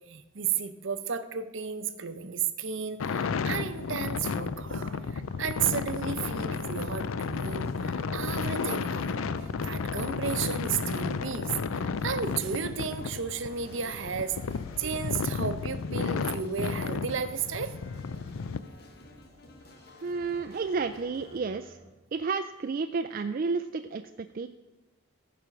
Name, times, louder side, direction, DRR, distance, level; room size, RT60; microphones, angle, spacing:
voice 1, 0.1-17.7, right 6 dB, 65° right, 10 dB, 0.7 m, -33 dB
sound 1, 3.0-18.6, left 5 dB, 85° left, 0.5 m, -33 dB
sound 2, 5.3-21.9, right 1 dB, 25° right, 1.1 m, -53 dB
sound 3, 5.6-21.4, left 2 dB, 50° left, 1.3 m, -52 dB
voice 2, 20.0-21.8 22.1-24.5, right 4 dB, 45° right, 7 dB, 0.3 m, -31 dB
14.5 x 5.1 x 5.8 m, 1.1 s
head